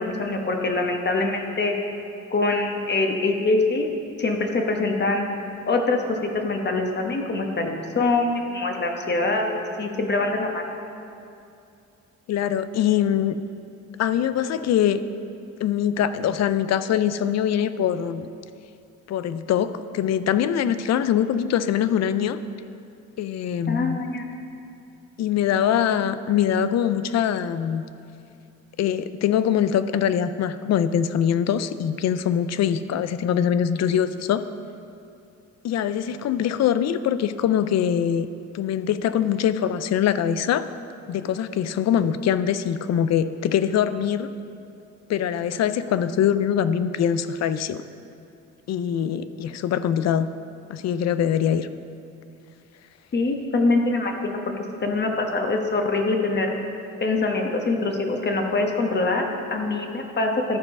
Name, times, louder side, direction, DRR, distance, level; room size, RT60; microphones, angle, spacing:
voice 1, 0.0-1.7 2.3-3.9 4.2-5.3 5.7-10.6 23.7-24.3 53.1-54.4 54.8-56.5 57.0-60.6, left 3 dB, 35° left, 3 dB, 1.2 m, -24 dB
voice 2, 12.3-13.3 14.0-15.0 15.6-18.3 19.1-22.4 23.2-24.0 25.2-27.8 28.8-34.4 35.6-38.3 38.5-40.6 41.1-44.3 45.1-47.8 48.7-50.3 50.7-51.7, left 9 dB, 60° left, 13 dB, 0.5 m, -23 dB
12.5 x 4.6 x 5.3 m, 2.6 s
cardioid pair, 90°, 30 cm